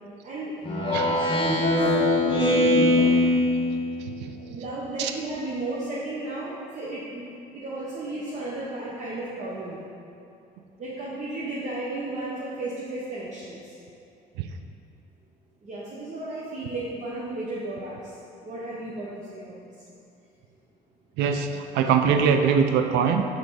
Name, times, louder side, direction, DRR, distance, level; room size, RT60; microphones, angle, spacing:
voice 1, 0.2-2.0 2.2-3.1 4.3-9.8 10.8-13.8 15.6-18.1 18.4-19.7, right 2 dB, 45° right, -7 dB, 1.0 m, -34 dB
Speech synthesizer, 0.6-4.2, left 1 dB, 30° left, 1.1 m, -22 dB
voice 2, 21.2-23.3, right 6 dB, 85° right, 6 dB, 0.4 m, -22 dB
5.4 x 3.9 x 4.7 m, 2.5 s
cardioid pair, 110°, 17 cm